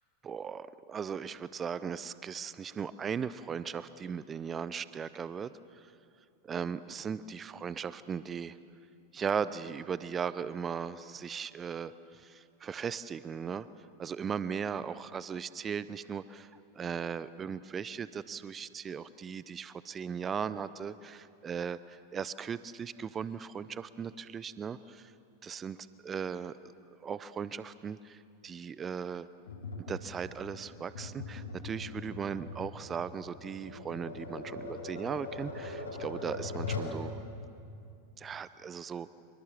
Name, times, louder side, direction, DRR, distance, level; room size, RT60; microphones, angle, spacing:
voice 1, 0.2-5.5 5.8-5.9 6.4-8.6 9.1-13.7 14.0-25.1 25.4-26.7 27.0-29.3 29.9-37.2 38.2-39.1, right 7 dB, 20° right, 16 dB, 0.7 m, -38 dB
Tap, 29.5-37.0, left 3 dB, 70° left, 5.1 m, -41 dB
25.5 x 23.0 x 7.3 m, 2.5 s
figure-of-eight pair, 90°, 0 cm